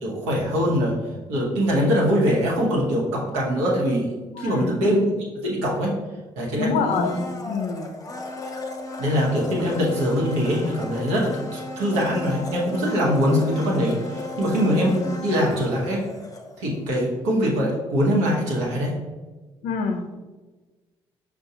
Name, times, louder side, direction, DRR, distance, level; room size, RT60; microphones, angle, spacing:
voice 1, 0.0-0.9 1.3-4.1 4.4-5.1 5.4-5.9 6.4-7.2 9.0-16.0 16.6-18.9, equal, 85° right, -3 dB, 0.9 m, -23 dB
voice 2, 4.3-4.8 6.6-7.9 19.6-20.1, left 5 dB, 70° left, 6 dB, 0.5 m, -26 dB
Domestic sounds home sounds, 6.9-16.8 17.1-17.2, left 3 dB, 25° left, 0.7 m, -34 dB
5.4 x 2.2 x 2.7 m, 1.3 s
hypercardioid pair, 45°, 13 cm